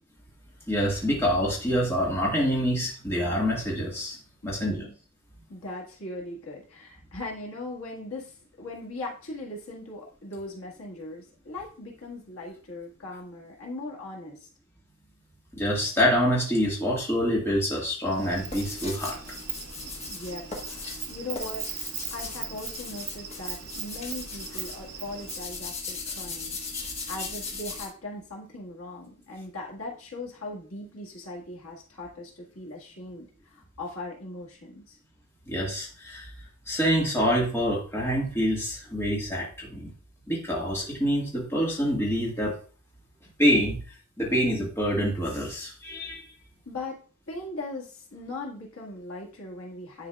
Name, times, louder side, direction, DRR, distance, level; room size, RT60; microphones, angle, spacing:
voice 1, 0.7-4.2 4.4-4.7 15.5-19.2 26.7-26.8 35.5-36.3 36.7-39.9 40.3-42.6 43.4-43.8 44.2-46.3, equal, 10° left, -4 dB, 1.7 m, -26 dB
voice 2, 4.4-4.9 5.5-14.5 19.8-35.0 46.7-50.1, left 2 dB, 80° left, -2 dB, 1.8 m, -39 dB
Insect, 18.1-25.5, right 10 dB, 85° right, 0.7 m, -39 dB
sound 1, 18.3-27.9, left 3 dB, 30° left, 1.3 m, -38 dB
10.0 x 4.7 x 2.4 m, 0.39 s
head